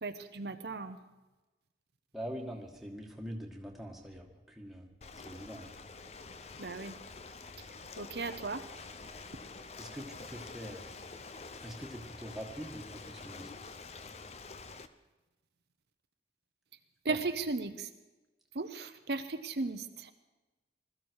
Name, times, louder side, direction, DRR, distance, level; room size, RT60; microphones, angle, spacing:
voice 1, 0.0-1.0 6.6-6.9 8.0-8.6 17.0-17.9 18.5-20.1, right 3 dB, 65° right, 8 dB, 0.8 m, -36 dB
voice 2, 2.1-4.9 5.2-5.7 9.8-10.9 11.6-13.7 17.1-17.2, equal, ahead, -1 dB, 1.9 m, -44 dB
Ocean, 5.0-14.9, left 4 dB, 35° left, 0.7 m, -47 dB
21.0 x 14.0 x 4.8 m, 1.1 s
head